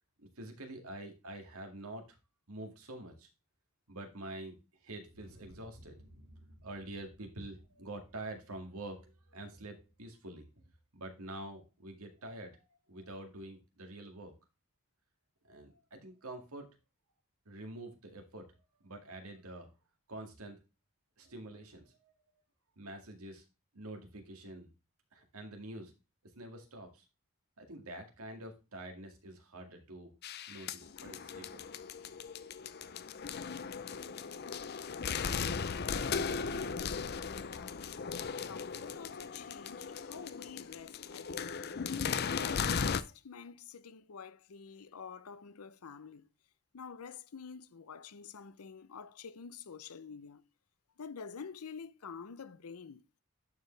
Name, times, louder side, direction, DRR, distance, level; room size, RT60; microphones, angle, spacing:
voice 1, 0.2-2.1 2.5-3.3 3.9-4.5 4.8-6.0 6.6-10.5 10.9-14.3 15.5-16.7 17.5-18.5 18.8-19.7 20.1-20.6 21.2-22.1 22.8-23.4 23.7-24.7 25.1-25.9 26.3-27.0 27.6-30.1 30.5-31.6 32.6-32.9, right 1 dB, 85° right, 2.1 m, -46 dB
sound 1, 5.1-10.6, equal, 60° right, 2.6 m, -60 dB
sound 2, 30.2-43.0, left 6 dB, 45° left, 0.5 m, -37 dB
voice 2, 37.4-37.8 38.5-41.6 42.2-46.3 46.7-50.4 51.0-53.0, left 6 dB, 85° left, 0.6 m, -48 dB
10.5 x 4.8 x 3.3 m
head